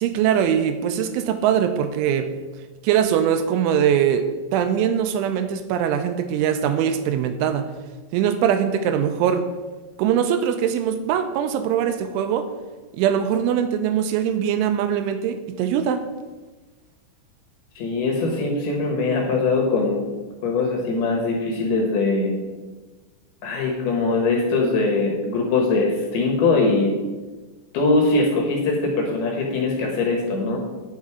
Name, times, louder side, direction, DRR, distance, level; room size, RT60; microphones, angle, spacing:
voice 1, 0.0-2.3 2.8-7.7 8.1-9.5 10.0-12.5 13.0-16.0, right 9 dB, 80° right, 9 dB, 2.9 m, -22 dB
voice 2, 17.8-20.1 20.4-22.3 23.4-26.9 27.7-30.6, left 3 dB, 65° left, 1 dB, 2.7 m, -21 dB
9.3 x 7.6 x 4.7 m, 1.2 s
omnidirectional pair, 5.8 m